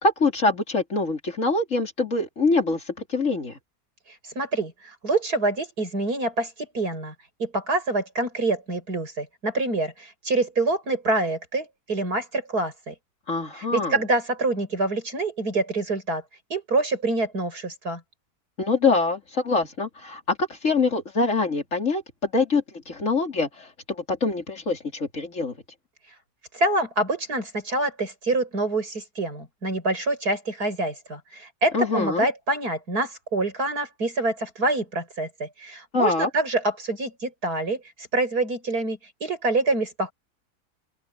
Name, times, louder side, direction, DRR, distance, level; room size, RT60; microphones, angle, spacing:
voice 1, 0.0-2.8 3.1-3.6 13.3-14.0 18.6-25.5 31.7-32.2 35.9-36.3, left 3 dB, 55° left, 3.4 m, -24 dB
voice 2, 4.4-7.1 7.4-12.9 13.6-16.2 16.5-18.0 26.5-40.1, right 2 dB, 80° right, 7.2 m, -26 dB
open air
omnidirectional pair, 1.6 m